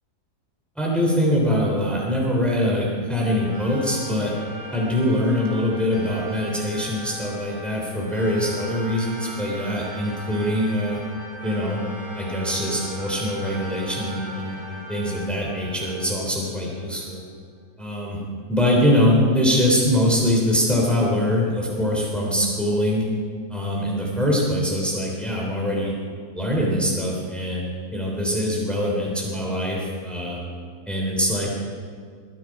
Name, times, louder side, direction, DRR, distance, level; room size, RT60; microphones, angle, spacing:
voice 1, 0.8-4.3 4.7-11.0 11.4-11.8 12.2-17.2 17.8-18.2 18.5-23.0 23.5-25.9 26.3-30.4 30.9-31.5, equal, ahead, -3 dB, 3.4 m, -23 dB
sound 1, 3.2-16.9, right 1 dB, 80° right, 4.6 m, -39 dB
21.0 x 12.0 x 4.9 m, 2.1 s
omnidirectional pair, 1.6 m